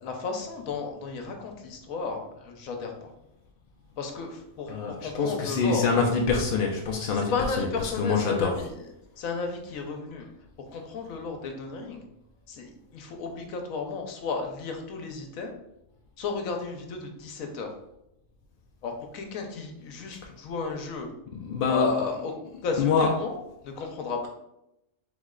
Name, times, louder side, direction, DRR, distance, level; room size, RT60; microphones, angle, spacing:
voice 1, 0.0-3.1 4.0-5.9 7.1-8.8 9.2-10.3 10.7-12.0 12.5-15.5 16.2-17.7 18.8-21.1 21.7-22.3 22.6-24.3, left 4 dB, 80° left, 4 dB, 1.2 m, -33 dB
voice 2, 4.7-7.7 8.0-8.6 21.4-22.1 22.8-23.1, left 5 dB, 60° left, 0 dB, 0.6 m, -25 dB
3.9 x 3.1 x 3.7 m, 0.85 s
omnidirectional pair, 1.4 m